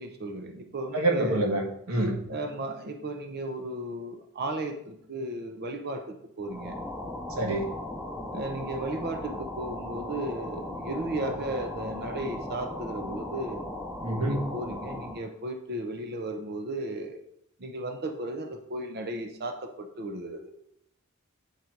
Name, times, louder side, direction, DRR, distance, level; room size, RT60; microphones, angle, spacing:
voice 1, 0.0-1.5 2.3-6.7 8.3-13.6 14.2-17.2 17.6-20.5, right 1 dB, 50° right, 5 dB, 0.7 m, -35 dB
voice 2, 0.9-2.1 7.4-7.7 14.0-14.4, right 1 dB, 80° right, 1 dB, 1.4 m, -26 dB
sound 1, 6.4-15.3, left 1 dB, 10° right, 0.9 m, -37 dB
8.2 x 3.9 x 4.6 m, 0.75 s
head